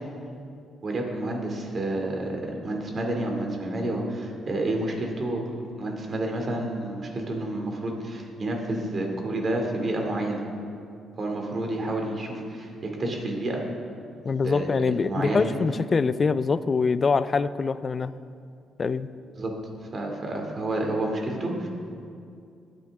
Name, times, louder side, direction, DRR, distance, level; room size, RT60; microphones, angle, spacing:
voice 1, 0.8-5.4 5.8-10.4 11.2-13.6 14.4-15.6 19.4-19.5 19.9-21.7, right 1 dB, 40° right, 1 dB, 2.5 m, -29 dB
voice 2, 14.2-18.1 18.8-19.1, left 5 dB, 40° left, 15 dB, 0.4 m, -24 dB
19.0 x 9.1 x 3.6 m, 2.4 s
cardioid pair, 90°, 0 cm